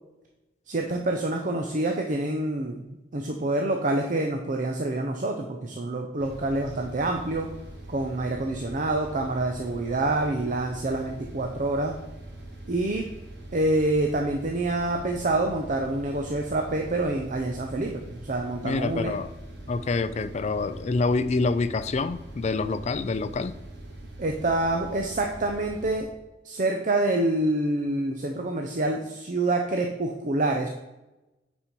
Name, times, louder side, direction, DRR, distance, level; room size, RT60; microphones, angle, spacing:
voice 1, 0.7-7.5 7.9-11.9 12.7-13.1 13.5-19.1 24.2-26.1 26.4-30.7, right 2 dB, 45° right, 3 dB, 0.6 m, -27 dB
sound 1, 6.2-26.0, right 1 dB, 65° right, 1.5 m, -43 dB
voice 2, 18.6-19.3 19.7-23.6, left 3 dB, 40° left, 13 dB, 0.4 m, -27 dB
8.8 x 4.4 x 4.5 m, 1.0 s
head